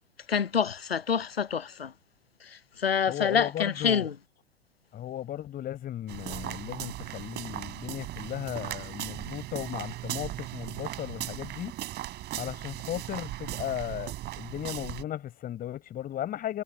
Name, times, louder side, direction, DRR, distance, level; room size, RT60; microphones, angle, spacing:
voice 1, 0.3-1.9 2.8-4.1, left 7 dB, 85° left, 0.6 m, -27 dB
voice 2, 3.1-4.1 4.9-11.7 12.3-16.6, left 12 dB, 30° left, 5.9 m, -36 dB
sound 1, 6.1-15.0, right 15 dB, 35° right, 4.4 m, -38 dB
figure-of-eight pair, 95°, 29 cm